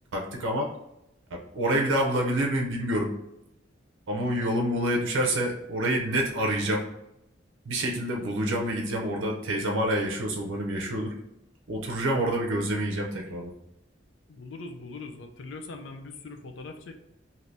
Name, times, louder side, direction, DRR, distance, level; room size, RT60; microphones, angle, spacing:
voice 1, 0.1-0.7 1.3-3.1 4.1-6.8 7.7-11.1 11.7-13.5, right 1 dB, 90° right, 0 dB, 0.5 m, -27 dB
voice 2, 14.3-17.0, left 3 dB, 80° left, 5 dB, 0.5 m, -41 dB
2.7 x 2.6 x 3.3 m, 0.85 s
head